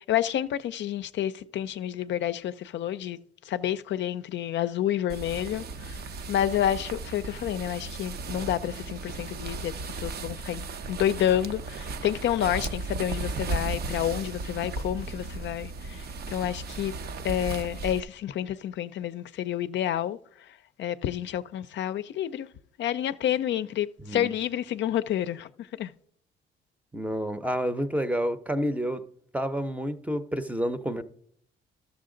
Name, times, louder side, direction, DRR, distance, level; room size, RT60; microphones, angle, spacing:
voice 1, 0.0-3.2 3.4-6.0 6.3-16.9 17.2-22.5 22.8-25.9, left 11 dB, 65° left, 0.4 m, -29 dB
sound 1, 5.1-18.0, right 3 dB, 55° right, 0.6 m, -36 dB
voice 2, 26.9-29.0 29.3-31.0, equal, 5° right, 0.6 m, -29 dB
12.5 x 7.1 x 3.8 m
cardioid pair, 90°, 20 cm